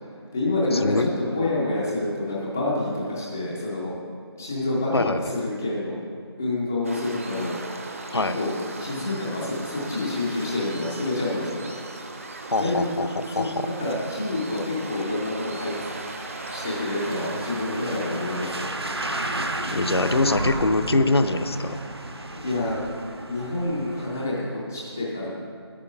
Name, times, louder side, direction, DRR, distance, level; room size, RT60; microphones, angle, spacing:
voice 1, 0.0-3.9 4.4-6.0 6.4-7.5 8.1-11.7 12.6-12.8 13.3-13.5 13.8-15.9 16.5-18.8 22.4-22.8 23.3-25.3, left 2 dB, 5° left, -6 dB, 0.4 m, -28 dB
voice 2, 0.7-1.1 4.9-5.2 8.1-8.4 12.5-13.7 19.7-21.8, left 2 dB, 70° left, 9 dB, 0.6 m, -23 dB
Waves surf, 6.8-18.7, right 2 dB, 30° right, 0.7 m, -38 dB
sound 1, 15.5-24.3, right 2 dB, 70° right, 1.1 m, -33 dB
9.8 x 8.8 x 5.9 m, 2.2 s
figure-of-eight pair, 160°, 14 cm